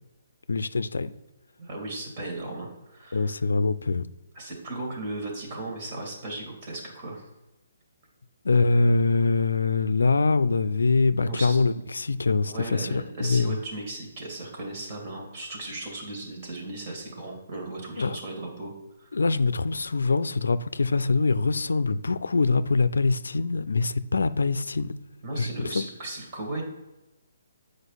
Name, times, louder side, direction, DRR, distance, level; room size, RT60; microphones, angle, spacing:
voice 1, 0.5-1.1 3.1-4.1 8.4-13.6 18.0-18.2 19.1-24.9 25.4-25.8, left 3 dB, 80° left, 0.4 m, -24 dB
voice 2, 1.6-3.4 4.3-7.3 11.2-11.6 12.5-18.7 19.0-19.1 25.2-26.6, right 2 dB, 40° right, 2.4 m, -36 dB
8.0 x 5.0 x 4.0 m
hypercardioid pair, 145°, 0 cm